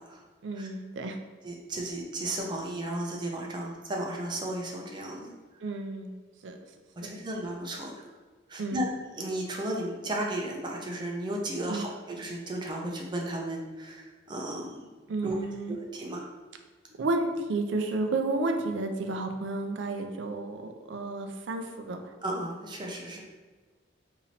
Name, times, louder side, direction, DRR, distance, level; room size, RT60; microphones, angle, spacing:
voice 1, 0.4-1.2 5.6-6.2 6.4-6.6 7.0-7.1 8.6-8.8 11.7-11.9 15.1-15.8 17.0-22.1, right 2 dB, 80° right, 5 dB, 0.4 m, -31 dB
voice 2, 1.4-5.3 7.0-7.9 8.5-8.9 9.1-14.9 15.2-15.4 15.7-16.3 22.2-23.2, right 1 dB, 25° right, 0 dB, 0.5 m, -34 dB
2.9 x 2.7 x 4.1 m, 1.3 s
head